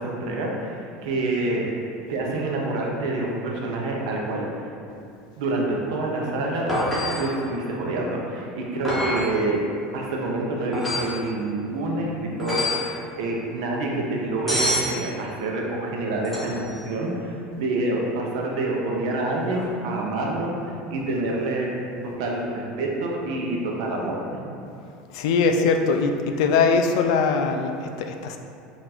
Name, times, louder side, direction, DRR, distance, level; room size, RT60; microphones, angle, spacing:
voice 1, 0.0-1.7 2.1-4.6 5.4-6.8 7.2-9.6 9.9-21.7 22.0-24.4, right 2 dB, 75° right, -1 dB, 0.7 m, -27 dB
sound 1, 6.7-7.3 8.8-9.3 10.7-11.2 12.4-12.9 14.5-14.9 16.2-16.7 19.5-19.6, left 1 dB, 5° left, 0.9 m, -26 dB
voice 2, 25.1-28.4, left 4 dB, 75° left, 5 dB, 0.4 m, -21 dB
4.3 x 2.6 x 4.2 m, 2.6 s
cardioid pair, 175°, 3 cm